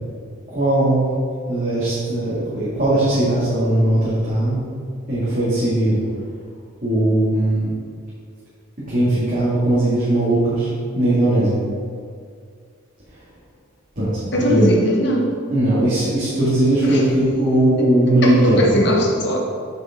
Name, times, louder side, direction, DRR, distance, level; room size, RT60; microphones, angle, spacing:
voice 1, 0.5-1.1 1.5-4.6 5.1-6.0 6.8-7.7 8.9-11.6 14.0-14.1 14.4-14.7 15.5-18.8, right 1 dB, 40° right, -11 dB, 2.2 m, -19 dB
voice 2, 14.3-15.3 16.8-17.0 18.2-19.4, left 1 dB, 55° left, -1 dB, 1.4 m, -19 dB
8.4 x 6.9 x 3.8 m, 2.2 s
head